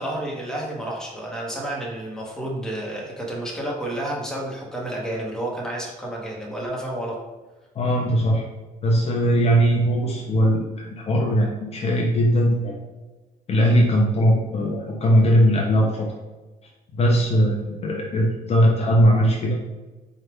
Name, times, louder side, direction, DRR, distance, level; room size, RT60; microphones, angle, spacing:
voice 1, 0.0-7.2, right 1 dB, 5° left, -3 dB, 1.1 m, -30 dB
voice 2, 7.8-8.4 8.8-12.8 13.5-16.1 16.9-19.6, equal, 40° left, -1 dB, 0.6 m, -19 dB
4.4 x 2.4 x 3.5 m, 1.2 s
cardioid pair, 110°, 17 cm